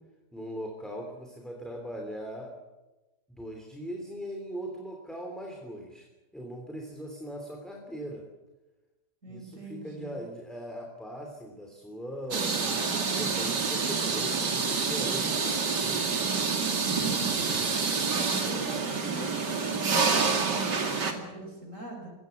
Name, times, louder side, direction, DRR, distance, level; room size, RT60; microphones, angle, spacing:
voice 1, 0.3-2.5 3.3-6.1 6.3-8.3 9.3-16.1, equal, ahead, 1 dB, 3.1 m, -40 dB
voice 2, 9.2-10.2 16.6-17.6 18.0-22.1, right 1 dB, 45° right, 1 dB, 6.2 m, -41 dB
sound 1, 12.3-21.1, right 5 dB, 90° right, 3.0 m, -28 dB
22.5 x 16.5 x 9.4 m, 1.1 s
omnidirectional pair, 1.8 m